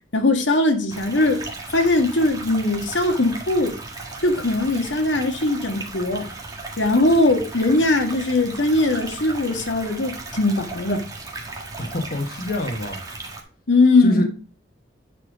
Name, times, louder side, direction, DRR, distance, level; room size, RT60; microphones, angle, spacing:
voice 1, 0.1-1.4 1.7-3.8 4.2-6.3 6.8-11.0 13.7-14.2, left 2 dB, 85° left, 1.9 m, -20 dB
sound 1, 0.9-13.4, right 3 dB, 20° right, 1.7 m, -36 dB
voice 2, 11.8-13.0 14.0-14.2, left 1 dB, 50° left, 1.5 m, -26 dB
9.9 x 4.4 x 5.1 m
head